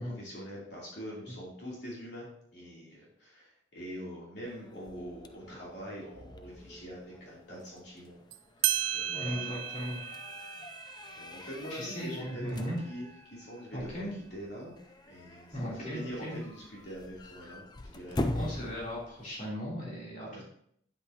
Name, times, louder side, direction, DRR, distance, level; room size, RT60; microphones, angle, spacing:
voice 1, 0.0-8.2 8.6-9.4 11.2-13.0 13.3-14.7 15.1-17.7 17.9-18.5 20.3-20.4, equal, 60° left, -5 dB, 3.2 m, -44 dB
sound 1, 4.5-19.5, left 1 dB, 20° left, 0.4 m, -43 dB
sound 2, 8.3-8.4 8.6-13.7, right 11 dB, 75° right, 0.4 m, -36 dB
voice 2, 9.1-10.0 11.7-12.8 13.7-14.1 15.5-16.4 18.3-20.4, equal, 40° left, -6 dB, 3.3 m, -37 dB
9.8 x 8.5 x 2.9 m, 0.67 s
head